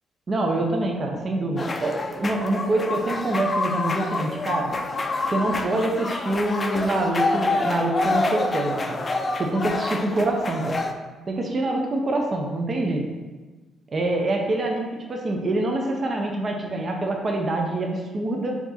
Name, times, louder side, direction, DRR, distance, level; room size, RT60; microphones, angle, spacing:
voice 1, 0.3-4.7 5.3-9.0 9.4-10.8 11.3-13.0 13.9-18.5, right 2 dB, 40° right, 1 dB, 0.6 m, -25 dB
sound 1, 1.6-10.9, left 2 dB, 30° left, 0.4 m, -27 dB
4.4 x 2.9 x 4.1 m, 1.2 s
cardioid pair, 90°, 0 cm